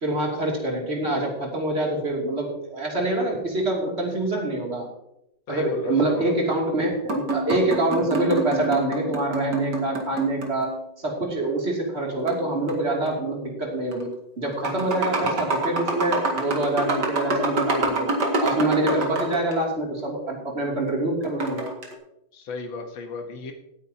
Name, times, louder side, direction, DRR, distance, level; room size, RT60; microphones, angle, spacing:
voice 1, 0.0-4.9 5.5-14.1 14.4-18.1 18.4-21.6, right 1 dB, 35° right, -1 dB, 3.0 m, -25 dB
voice 2, 5.5-6.4 22.3-23.5, left 4 dB, 90° left, 5 dB, 2.0 m, -34 dB
sound 1, 7.1-10.8 12.3-13.1 13.9-14.0 14.4-19.5 21.2-21.9, right 2 dB, 60° right, 2.6 m, -27 dB
17.5 x 9.6 x 2.9 m, 0.84 s
omnidirectional pair, 2.0 m